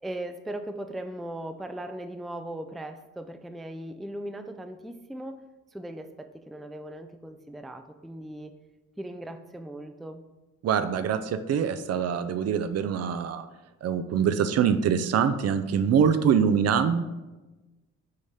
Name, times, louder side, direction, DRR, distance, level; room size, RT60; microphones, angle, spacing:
voice 1, 0.0-5.4 5.7-8.5 9.0-10.2, right 1 dB, ahead, 8 dB, 0.3 m, -38 dB
voice 2, 10.6-13.5 13.8-17.0, right 7 dB, 55° right, 11 dB, 0.5 m, -24 dB
6.5 x 4.1 x 3.6 m, 1.1 s
cardioid pair, 90°, 30 cm